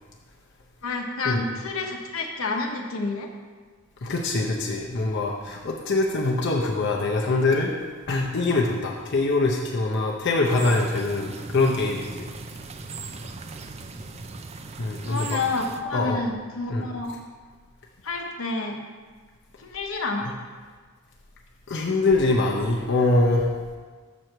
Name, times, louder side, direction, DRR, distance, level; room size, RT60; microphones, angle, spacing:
voice 1, 0.8-3.3 15.0-17.2 18.0-18.8 19.6-20.3, left 3 dB, 80° left, 2 dB, 0.9 m, -29 dB
voice 2, 4.0-7.7 8.1-12.3 14.8-15.4 15.9-16.2 16.7-16.9 21.7-23.5, left 2 dB, 55° left, -1 dB, 0.6 m, -23 dB
sound 1, 10.4-15.8, right 4 dB, 30° right, 0.4 m, -39 dB
6.2 x 4.5 x 6.5 m, 1.5 s
head